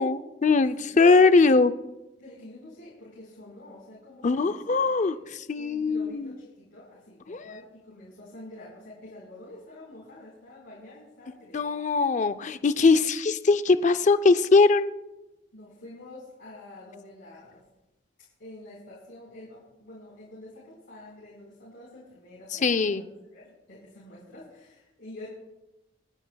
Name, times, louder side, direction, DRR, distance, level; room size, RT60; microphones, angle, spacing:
voice 1, 0.0-1.7 4.2-5.2 5.5-6.3 7.3-7.6 11.5-14.9 22.5-23.0, left 4 dB, 40° left, 13 dB, 0.5 m, -21 dB
voice 2, 2.2-5.3 5.6-11.7 15.5-17.6 18.4-23.1 23.3-25.3, left 1 dB, 75° left, -6 dB, 4.3 m, -47 dB
28.5 x 9.8 x 2.3 m, 1.0 s
head